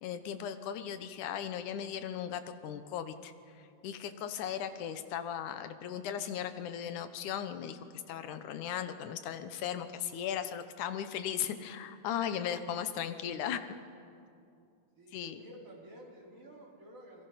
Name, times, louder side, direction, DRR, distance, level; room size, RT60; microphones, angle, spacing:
voice 1, 0.0-3.3 3.8-13.6 15.1-15.4, left 9 dB, 90° left, 10 dB, 2.5 m, -37 dB
voice 2, 14.9-17.2, right 1 dB, 25° right, -3 dB, 4.5 m, -52 dB
28.0 x 22.0 x 5.8 m, 2.5 s
omnidirectional pair, 3.4 m